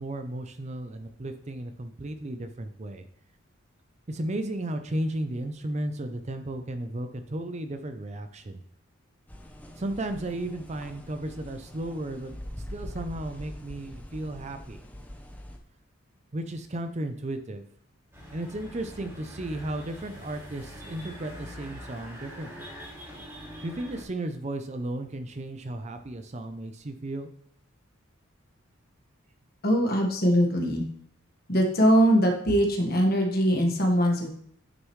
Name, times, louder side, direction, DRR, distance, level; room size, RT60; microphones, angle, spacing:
voice 1, 0.0-3.0 4.1-8.6 9.8-12.3 12.7-14.8 16.3-17.6 18.3-22.7 23.6-27.3, right 1 dB, 35° right, 8 dB, 0.5 m, -34 dB
sound 1, 9.3-15.6, left 1 dB, 5° left, 0.7 m, -43 dB
sound 2, 18.1-24.0, equal, 10° right, 2.5 m, -44 dB
voice 2, 29.6-30.8 31.5-34.3, equal, 45° left, 2 dB, 1.5 m, -22 dB
9.1 x 6.6 x 3.2 m, 0.64 s
head